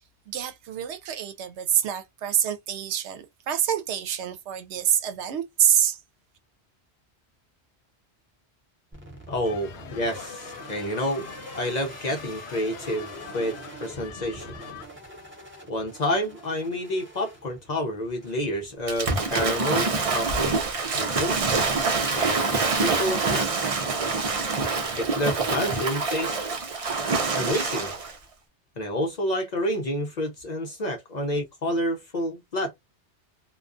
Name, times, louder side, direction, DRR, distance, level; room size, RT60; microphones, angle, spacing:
voice 1, 0.3-6.0, right 10 dB, 85° right, 0.9 m, -26 dB
sound 1, 8.9-28.1, right 2 dB, 10° right, 0.8 m, -47 dB
voice 2, 9.3-11.3 11.5-14.5 15.7-20.6 20.9-21.4 22.1-23.7 24.9-26.4 27.3-27.9 28.8-32.7, equal, 50° left, 0.5 m, -29 dB
sound 2, 9.4-14.9, left 7 dB, 75° left, 0.8 m, -43 dB
Waves surf / Splash splatter, 18.9-28.1, right 4 dB, 45° right, 0.5 m, -26 dB
2.3 x 2.2 x 2.4 m
omnidirectional pair, 1.1 m